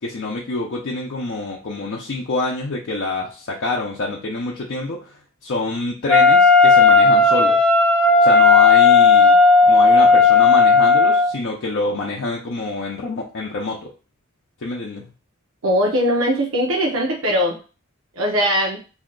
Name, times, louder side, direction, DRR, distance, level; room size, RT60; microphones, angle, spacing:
voice 1, 0.0-7.7 8.2-9.4 9.7-13.9 14.6-15.0, left 2 dB, 60° left, -2 dB, 0.5 m, -26 dB
Wind instrument woodwind instrument, 6.1-11.3, left 4 dB, 5° left, 0.5 m, -13 dB
voice 2, 15.6-17.6 18.1-18.8, equal, 75° right, -2 dB, 0.7 m, -20 dB
2.7 x 2.2 x 3.7 m, 0.34 s
head